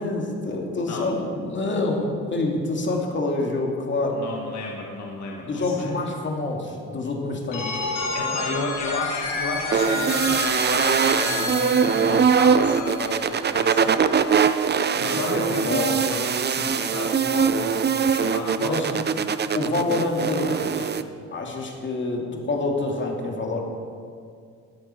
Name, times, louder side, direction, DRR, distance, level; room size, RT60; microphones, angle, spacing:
voice 1, 0.0-4.2 5.4-7.8 15.1-15.4 15.7-15.9 18.6-18.9 19.5-20.9 21.3-23.6, left 2 dB, 40° left, 0 dB, 2.5 m, -27 dB
voice 2, 4.1-5.9 8.1-13.9 15.0-19.0 20.4-20.6, left 3 dB, 65° left, -1 dB, 1.6 m, -32 dB
Telephone, 7.5-13.3, left 3 dB, 85° left, 2.6 m, -30 dB
sound 1, 9.7-21.0, right 6 dB, 35° right, 0.6 m, -22 dB
16.0 x 11.5 x 4.5 m, 2.3 s
cardioid pair, 90°, 30 cm